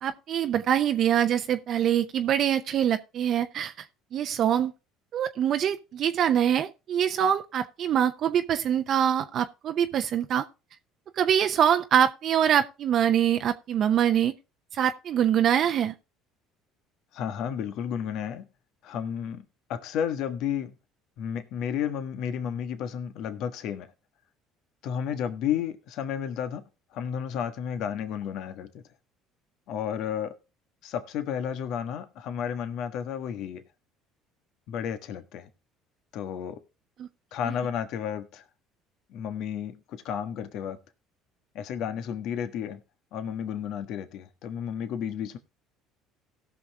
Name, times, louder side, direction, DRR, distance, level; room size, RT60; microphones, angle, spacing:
voice 1, 0.0-3.7 4.1-4.7 5.1-10.5 11.2-14.3 14.7-15.9 37.0-37.1, right 9 dB, 55° right, 0.7 m, -24 dB
voice 2, 17.1-18.5 18.8-20.7 21.2-23.9 24.8-28.8 29.7-30.3 30.8-33.6 34.7-35.5 36.1-36.6 37.3-38.4 39.1-40.8 41.5-42.8 43.1-45.4, left 8 dB, 65° left, 1.4 m, -32 dB
17.0 x 6.1 x 3.4 m
supercardioid pair, 80°, 0 cm